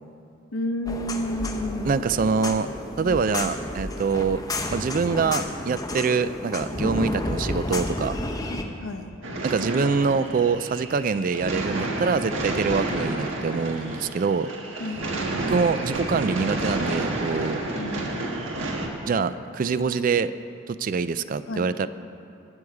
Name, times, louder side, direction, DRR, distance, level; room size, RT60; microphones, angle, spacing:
voice 1, 0.5-1.9 2.6-2.7 3.1-3.6 7.0-7.5 8.5-9.1 13.0-13.1 14.8-15.4 17.7-18.3 21.5-21.9, left 1 dB, 85° left, 6 dB, 1.0 m, -33 dB
sound 1, 0.9-8.6, left 1 dB, 15° left, 0.7 m, -31 dB
voice 2, 1.8-2.7 3.0-4.4 4.7-8.2 9.4-14.5 15.4-17.6 19.1-20.3 20.7-21.9, right 5 dB, 40° right, 14 dB, 0.3 m, -25 dB
sound 2, 9.2-18.9, right 2 dB, 70° right, 1.5 m, -30 dB
21.0 x 7.9 x 4.8 m, 2.6 s
head